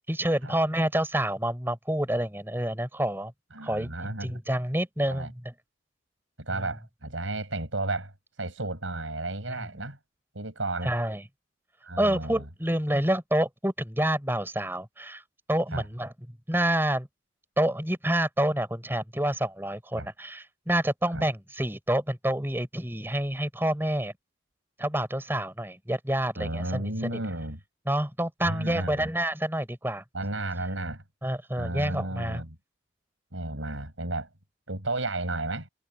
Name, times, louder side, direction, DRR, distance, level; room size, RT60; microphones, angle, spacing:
voice 1, 0.1-3.3 3.6-4.0 4.2-5.5 6.5-6.7 9.5-9.6 10.8-11.2 12.0-15.2 15.5-16.1 16.5-17.1 17.6-24.1 24.8-27.2 27.9-30.0 31.2-32.4, right 1 dB, 10° right, 4.1 m, -28 dB
voice 2, 3.5-4.4 5.1-5.3 6.4-8.1 8.4-10.0 10.3-10.9 11.8-12.4 15.7-15.8 20.0-20.1 21.1-21.2 26.4-27.6 28.4-29.1 30.1-31.0 31.6-32.6 33.3-34.3 34.7-35.7, right 2 dB, 90° right, 7.5 m, -33 dB
head